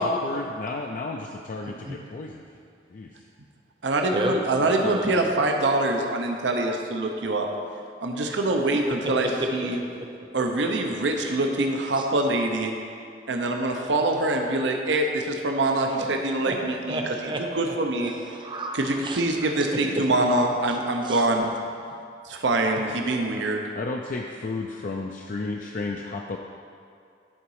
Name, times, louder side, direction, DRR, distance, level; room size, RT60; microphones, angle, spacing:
voice 1, 0.0-2.5 2.9-3.2 23.3-23.5 23.7-26.4, left 3 dB, 45° left, 1 dB, 0.4 m, -33 dB
voice 2, 1.6-2.0 4.1-5.2 9.0-9.1 9.4-9.5 9.8-10.1 11.9-12.1 16.0-16.1 16.4-16.6 16.9-19.2 19.6-20.1 20.7-20.8 21.0-21.3 22.7-22.8, right 1 dB, 25° right, 1 dB, 0.7 m, -32 dB
voice 3, 3.8-7.5 8.0-9.8 10.3-12.7 13.3-17.0 17.6-18.1 18.8-21.5 22.3-23.6, right 2 dB, 80° right, 2 dB, 0.7 m, -24 dB
11.0 x 4.0 x 4.8 m, 2.3 s
head